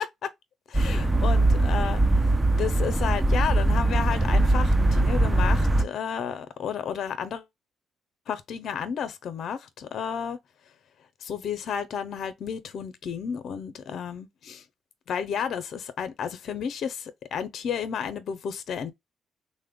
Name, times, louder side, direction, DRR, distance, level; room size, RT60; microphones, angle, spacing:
voice 1, 0.7-7.5 8.3-10.4 11.2-14.6 15.1-18.9, left 7 dB, 65° left, 0.6 m, -32 dB
sound 1, 0.7-5.8, right 2 dB, 15° right, 0.4 m, -21 dB
3.2 x 2.1 x 3.6 m
cardioid pair, 90°, 0 cm